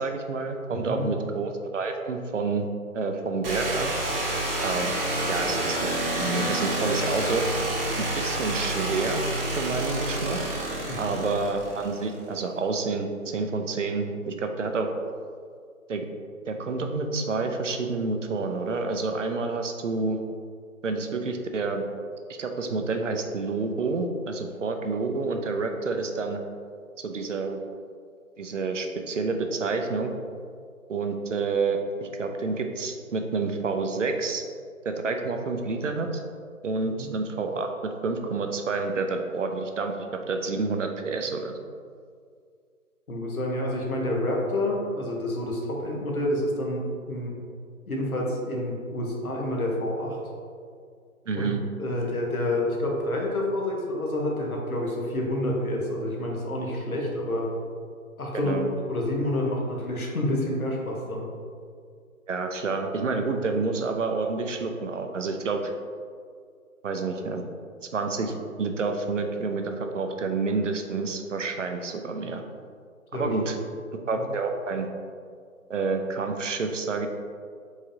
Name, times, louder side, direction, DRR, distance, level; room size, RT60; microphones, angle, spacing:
voice 1, 0.0-2.7 2.9-3.9 4.6-5.0 5.3-5.8 6.2-7.5 8.0-9.2 9.6-10.4 11.0-14.9 15.9-16.0 16.5-20.2 20.8-21.9 22.4-26.4 27.0-27.6 28.4-30.1 30.9-34.4 34.8-36.2 36.6-39.9 40.3-41.5 51.3-51.6 58.3-58.7 62.3-65.7 66.8-67.5 67.9-72.4 73.1-73.6 74.1-74.9 75.7-77.1, right 4 dB, 60° right, 5 dB, 0.5 m, -28 dB
voice 2, 0.7-1.1 10.9-11.2 37.0-37.1 43.1-47.3 47.9-50.2 51.3-57.5 58.2-58.6 58.9-61.3 73.1-73.3 74.2-74.3, left 1 dB, 80° left, -1 dB, 1.1 m, -28 dB
sound 1, 3.4-12.2, right 1 dB, 40° right, 0.9 m, -28 dB
4.8 x 3.6 x 2.7 m, 2.1 s
figure-of-eight pair, 145°, 43 cm